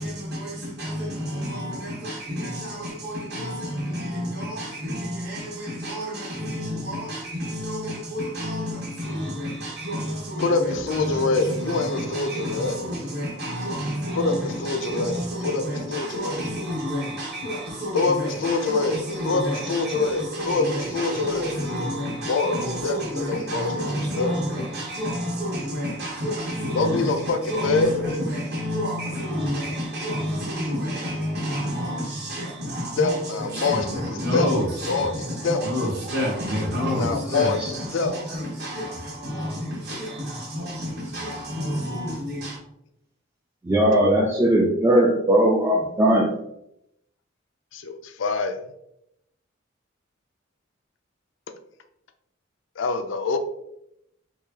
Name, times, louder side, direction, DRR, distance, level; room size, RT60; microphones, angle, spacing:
voice 1, 0.0-42.6, equal, 50° right, 1.1 m, -29 dB
voice 2, 10.4-12.8 14.1-15.6 15.9-16.4 17.9-19.0 19.2-21.5 22.3-22.6 22.8-23.7 24.2-24.3 26.7-27.4 27.6-27.9 33.0-33.8 34.3-34.5 34.9-35.1 35.4-35.6 37.0-37.6 37.9-38.1 47.7-48.6 52.8-53.4, left 3 dB, 65° left, 0.4 m, -25 dB
voice 3, 43.6-46.3, right 1 dB, 15° right, 0.3 m, -19 dB
4.6 x 2.3 x 2.7 m
head